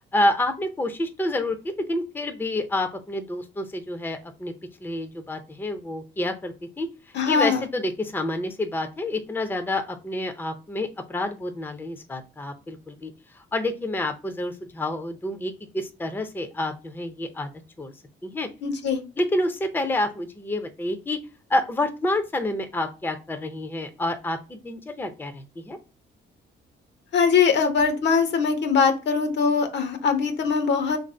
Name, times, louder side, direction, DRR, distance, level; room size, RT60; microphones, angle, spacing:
voice 1, 0.1-4.5 4.8-6.9 7.2-17.5 17.8-17.9 18.2-18.5 19.2-21.2 21.5-25.8, left 1 dB, 10° left, 6 dB, 0.5 m, -28 dB
voice 2, 7.1-7.6 18.6-19.0 27.1-31.0, left 5 dB, 60° left, 7 dB, 0.8 m, -21 dB
3.0 x 2.6 x 4.2 m, 0.31 s
cardioid pair, 90°, 20 cm